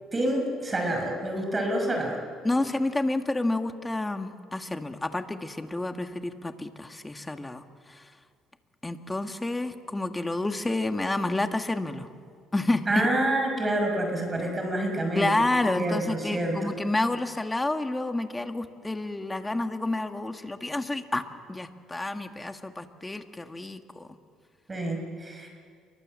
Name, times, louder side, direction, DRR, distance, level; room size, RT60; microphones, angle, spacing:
voice 1, 0.1-2.2 12.9-15.5 15.8-16.8 24.7-25.5, right 1 dB, 25° right, 3 dB, 6.0 m, -28 dB
voice 2, 2.4-7.6 7.9-8.0 8.8-12.1 12.5-12.9 15.2-21.2 21.5-24.1, left 2 dB, 15° left, 7 dB, 1.9 m, -29 dB
29.0 x 23.5 x 7.7 m, 2.1 s
supercardioid pair, 90°, 0 cm